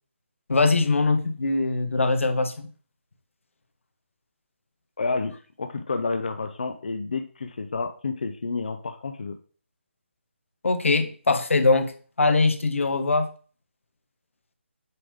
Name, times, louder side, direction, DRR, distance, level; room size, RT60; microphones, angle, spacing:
voice 1, 0.5-2.7 10.6-11.9 12.2-13.3, left 3 dB, 80° left, 8 dB, 1.2 m, -22 dB
voice 2, 5.0-9.4, left 4 dB, 40° left, 6 dB, 0.5 m, -30 dB
8.3 x 3.5 x 3.6 m, 0.41 s
hypercardioid pair, 180°, 7 cm